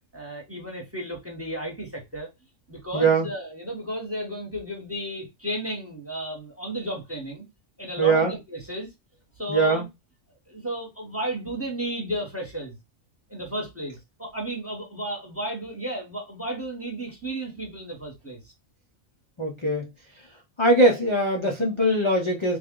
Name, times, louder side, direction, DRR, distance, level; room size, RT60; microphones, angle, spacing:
voice 1, 0.1-2.3 2.7-7.4 7.8-8.9 9.4-9.9 10.5-12.8 13.3-18.5, right 1 dB, 10° right, 1.1 m, -33 dB
voice 2, 2.9-3.3 8.0-8.3 9.5-9.8 19.4-19.9 20.6-22.6, right 2 dB, 30° left, 0.6 m, -21 dB
3.4 x 2.5 x 3.7 m
omnidirectional pair, 1.3 m